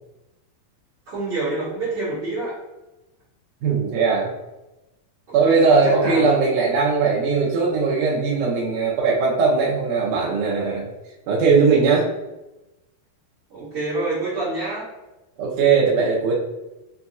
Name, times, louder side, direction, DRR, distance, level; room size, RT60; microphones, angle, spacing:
voice 1, 1.1-2.5 5.3-5.6 5.8-6.5 13.5-14.9, right 2 dB, 50° right, -12 dB, 2.0 m, -27 dB
voice 2, 3.6-4.3 5.3-10.9 11.3-12.1 15.4-16.4, right 4 dB, 75° right, -5 dB, 2.0 m, -19 dB
6.1 x 2.7 x 2.3 m, 1.0 s
omnidirectional pair, 4.3 m